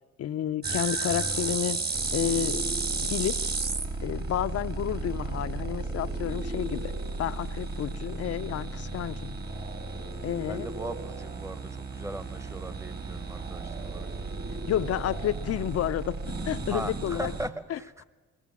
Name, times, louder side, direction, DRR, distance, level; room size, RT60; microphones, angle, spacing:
voice 1, 0.2-1.8 2.1-2.7 3.0-3.4 4.0-6.9 7.2-9.3 10.2-10.7 14.7-16.2 16.5-17.3 17.7-17.8, left 11 dB, 55° left, 13 dB, 0.6 m, -30 dB
sound 1, 0.6-17.5, right 3 dB, 35° right, 1.8 m, -33 dB
voice 2, 10.5-14.1 16.7-18.0, right 1 dB, 10° right, 12 dB, 1.0 m, -39 dB
21.5 x 17.0 x 7.2 m, 1.4 s
cardioid pair, 90°, 30 cm